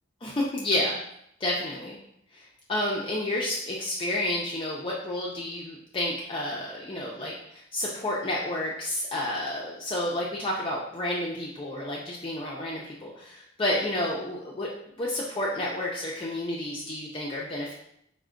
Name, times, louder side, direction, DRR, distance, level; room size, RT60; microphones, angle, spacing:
voice 1, 0.2-1.0 1.4-2.0 2.7-14.7 15.0-17.7, left 1 dB, 25° left, -4 dB, 0.4 m, -30 dB
4.5 x 2.1 x 3.7 m, 0.73 s
head